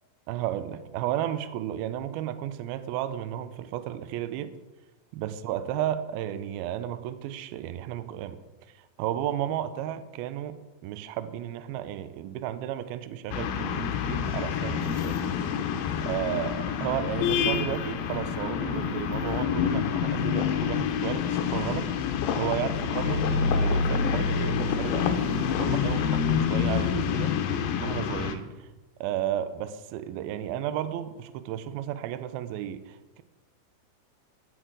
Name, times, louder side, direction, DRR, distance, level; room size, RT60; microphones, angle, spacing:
voice 1, 0.3-4.5 5.1-8.4 8.8-15.2 16.1-21.9 22.4-25.2 25.6-27.3 27.8-28.7 29.0-33.2, right 11 dB, 85° right, 11 dB, 2.2 m, -33 dB
sound 1, 13.3-28.4, left 8 dB, 80° left, 2.4 m, -28 dB
sound 2, 22.6-27.1, left 1 dB, 25° right, 3.4 m, -30 dB
17.0 x 6.4 x 3.8 m, 1.1 s
omnidirectional pair, 4.7 m